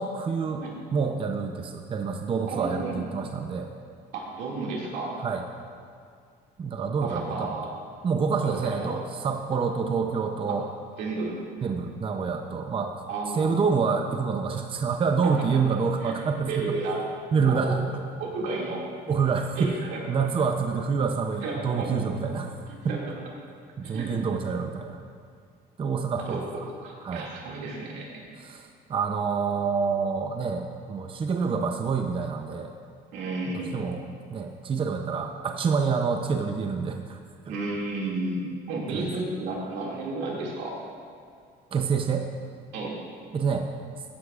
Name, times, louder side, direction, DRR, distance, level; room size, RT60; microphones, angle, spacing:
voice 1, 0.0-0.6 0.9-3.7 5.2-5.4 6.6-7.6 8.0-10.7 11.6-13.0 13.3-16.8 17.3-17.8 19.1-19.7 20.1-22.6 22.8-23.0 23.8-25.0 25.8-26.7 27.0-27.3 28.4-32.7 33.7-37.2 37.5-37.6 38.9-39.1 41.7-42.3 43.3-43.7, right 5 dB, 30° right, 4 dB, 0.6 m, -27 dB
voice 2, 2.5-3.0 4.1-5.1 7.0-7.7 8.4-8.9 9.5-9.6 11.0-11.4 13.1-13.6 16.0-17.1 17.5-17.8 18.2-18.8 19.6-20.0 21.4-21.9 22.9-23.2 23.8-24.1 26.3-26.4 26.8-28.2 33.1-33.8 37.5-38.4 38.7-40.7 42.7-43.0, right 3 dB, 90° right, -3 dB, 2.3 m, -32 dB
14.5 x 9.8 x 2.5 m, 2.2 s
cardioid pair, 110°, 17 cm